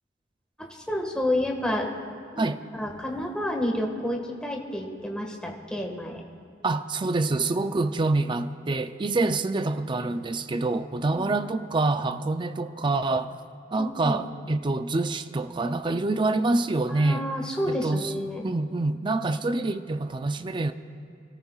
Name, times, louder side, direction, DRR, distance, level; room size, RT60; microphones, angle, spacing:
voice 1, 0.6-1.9 2.3-6.2 11.1-11.4 13.8-14.2 16.9-18.4, left 1 dB, 5° left, 0 dB, 1.6 m, -30 dB
voice 2, 6.6-13.3 13.7-17.3 17.7-18.1 18.4-20.7, right 2 dB, 25° right, 9 dB, 0.5 m, -26 dB
27.5 x 13.5 x 2.4 m, 2.8 s
head